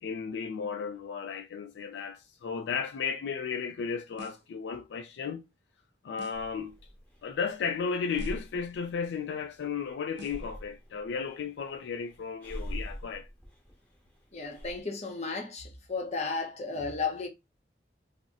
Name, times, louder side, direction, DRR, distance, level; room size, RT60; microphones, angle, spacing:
voice 1, 0.0-5.4 6.0-6.8 7.2-13.3, left 6 dB, 85° left, 0.3 m, -34 dB
sound 1, 4.2-4.6 6.2-6.6 8.2-8.6 10.2-10.6, equal, 90° right, 0.5 m, -49 dB
Breathing, 6.3-14.8, equal, 10° left, 0.8 m, -44 dB
voice 2, 14.3-17.3, left 4 dB, 40° left, 0.8 m, -34 dB
2.7 x 2.0 x 3.6 m
head